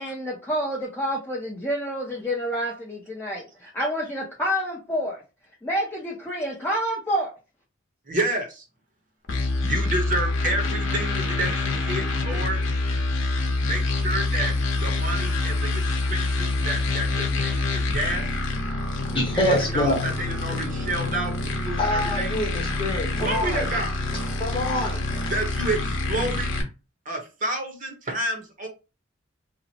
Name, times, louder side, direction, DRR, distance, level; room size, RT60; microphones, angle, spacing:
voice 1, 0.0-5.2 5.6-7.3, equal, 10° left, 0.5 m, -28 dB
voice 2, 8.1-8.6 9.6-12.6 13.6-14.5 14.8-18.3 19.4-21.4 21.6-22.3 23.2-23.9 25.3-26.5 27.1-28.7, right 1 dB, 40° right, 0.8 m, -29 dB
sound 1, 9.3-26.6, left 2 dB, 75° left, 0.8 m, -26 dB
voice 3, 19.1-20.0 21.8-23.7 24.4-25.0, left 1 dB, 25° left, 1.0 m, -25 dB
2.9 x 2.0 x 4.1 m
head